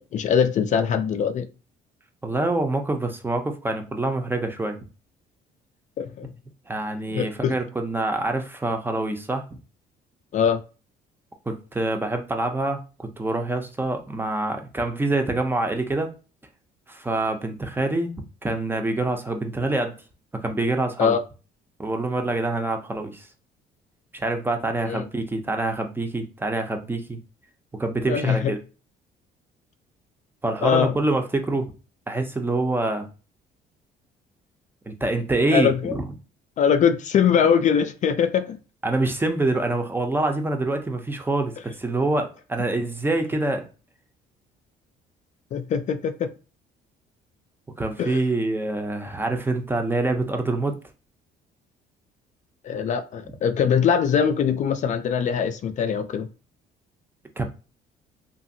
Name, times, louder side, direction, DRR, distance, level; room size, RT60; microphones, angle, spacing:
voice 1, 0.1-1.5 6.0-6.3 7.1-7.5 10.3-10.6 21.0-21.2 24.9-25.1 28.1-28.5 30.6-31.0 35.5-36.0 36.6-38.6 45.5-46.3 48.0-48.2 52.6-56.3, left 7 dB, 45° left, 0.4 m, -22 dB
voice 2, 2.2-4.8 6.7-9.6 11.5-16.1 16.9-18.2 18.4-19.9 20.4-21.2 21.8-23.3 24.1-27.2 27.8-28.6 30.4-31.7 32.1-33.1 34.9-36.0 38.8-43.7 47.8-50.7 57.4-57.5, right 2 dB, 10° right, 0.5 m, -26 dB
2.7 x 2.5 x 2.7 m
cardioid pair, 110°, 17 cm